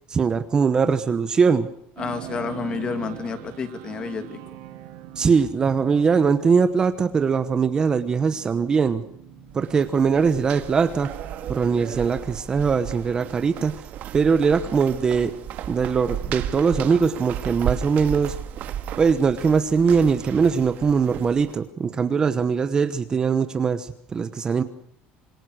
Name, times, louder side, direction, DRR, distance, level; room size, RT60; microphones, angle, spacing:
voice 1, 0.1-1.7 5.2-9.0 9.5-11.1 11.5-13.8 14.1-15.4 15.7-18.4 19.0-24.6, right 5 dB, 20° right, 11 dB, 1.0 m, -21 dB
voice 2, 2.0-4.4, left 5 dB, 25° left, 10 dB, 2.4 m, -30 dB
sound 1, 2.0-21.9, right 14 dB, 75° right, 2.9 m, -45 dB
sound 2, 9.5-21.6, right 10 dB, 45° right, 1.8 m, -34 dB
27.0 x 22.5 x 6.3 m, 0.68 s
cardioid pair, 170°, 4 cm